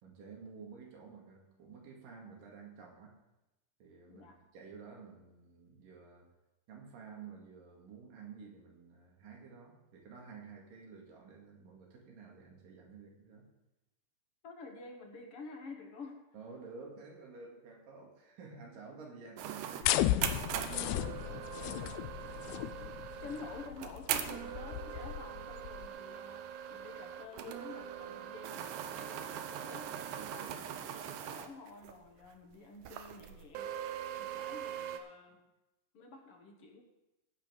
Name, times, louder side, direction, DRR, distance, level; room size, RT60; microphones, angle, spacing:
voice 1, 0.0-3.2 3.8-6.3 6.7-13.4 16.3-22.7 24.4-24.6 30.2-30.6 35.3-35.4, right 5 dB, 90° right, -1 dB, 3.8 m, -52 dB
voice 2, 14.4-16.2 23.2-29.9 30.3-33.7 34.2-35.4 35.9-36.8, left 4 dB, 55° left, 3 dB, 2.0 m, -50 dB
sound 1, 19.4-31.9 32.2-32.3 32.8-35.0, right 9 dB, 75° right, 2.2 m, -41 dB
sound 2, 19.8-25.9, left 14 dB, 85° left, 1.6 m, -35 dB
16.0 x 5.5 x 6.3 m, 0.96 s
omnidirectional pair, 3.8 m